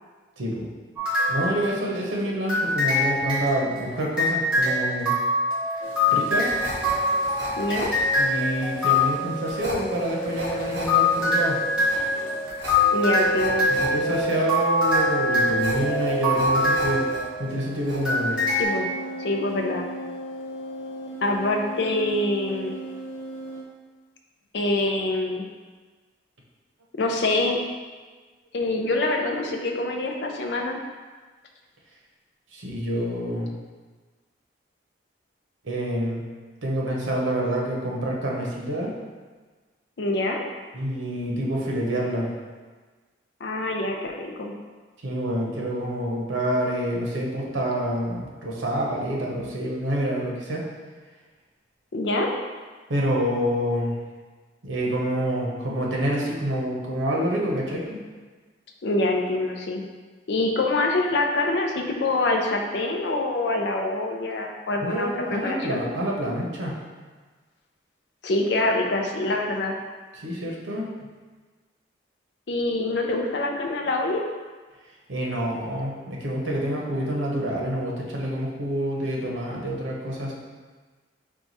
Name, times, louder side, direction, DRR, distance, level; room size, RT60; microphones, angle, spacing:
voice 1, 0.4-0.7 1.3-5.1 6.1-6.5 8.2-11.6 13.7-17.1 17.4-18.4 32.5-33.5 35.6-36.2 36.6-38.9 40.7-42.3 45.0-50.6 52.9-53.9 54.6-57.9 64.8-66.8 70.2-70.9 75.1-80.3, equal, 90° right, -2 dB, 0.8 m, -27 dB
sound 1, 1.0-2.1 2.5-9.4 10.4-17.6 18.0-18.6, left 2 dB, 5° right, 1.1 m, -24 dB
sound 2, 5.8-12.5 12.8-17.1 17.4-23.6, right 2 dB, 85° left, 0.9 m, -32 dB
sound 3, 6.5-17.2 17.5-18.2 18.5-18.6, equal, 60° right, 1.2 m, -37 dB
voice 2, 7.6-7.9 12.9-13.7 18.6-18.9 19.2-19.9 21.2-22.8 24.5-25.4 27.0-27.6 28.5-30.8 40.0-40.4 43.4-44.5 51.9-52.3 58.8-59.8 60.3-65.8 68.2-69.8 72.5-74.2, left 2 dB, 65° left, 2 dB, 0.5 m, -25 dB
4.6 x 2.3 x 4.0 m, 1.4 s
head